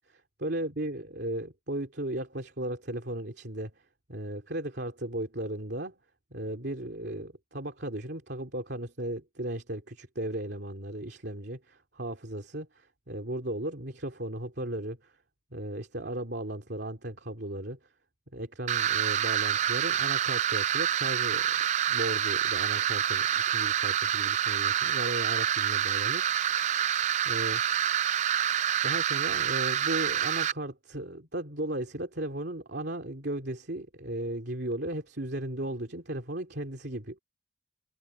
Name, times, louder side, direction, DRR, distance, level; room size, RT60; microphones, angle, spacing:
voice 1, 0.4-3.7 4.1-5.9 6.3-15.1 15.5-17.8 18.3-26.6 27.2-27.6 28.8-37.2, right 1 dB, 60° right, 2.9 m, -36 dB
sound 1, 18.7-30.5, right 10 dB, 40° right, 0.3 m, -27 dB
head